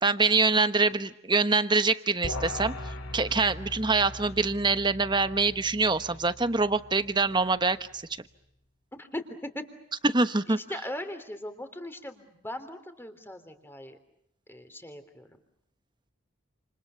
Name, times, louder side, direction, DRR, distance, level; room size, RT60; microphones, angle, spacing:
voice 1, 0.0-2.7 3.1-8.0 10.0-10.6, right 3 dB, 20° right, 11 dB, 1.1 m, -25 dB
sound 1, 2.2-7.7, left 1 dB, 65° left, 3.8 m, -40 dB
voice 2, 8.9-9.6 10.5-14.0 14.5-15.3, left 1 dB, 10° left, 8 dB, 3.2 m, -39 dB
29.5 x 28.5 x 7.0 m, 0.78 s
head